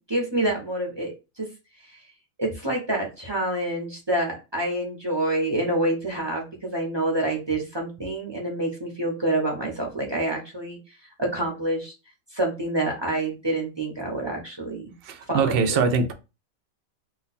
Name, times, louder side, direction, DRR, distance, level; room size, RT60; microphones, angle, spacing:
voice 1, 0.1-1.5 2.4-10.8 11.2-11.9 12.3-14.9 15.3-15.8, right 1 dB, 25° right, 0.6 m, -27 dB
voice 2, 15.0-16.1, right 5 dB, 65° right, 0.5 m, -23 dB
2.4 x 2.2 x 4.0 m
omnidirectional pair, 1.4 m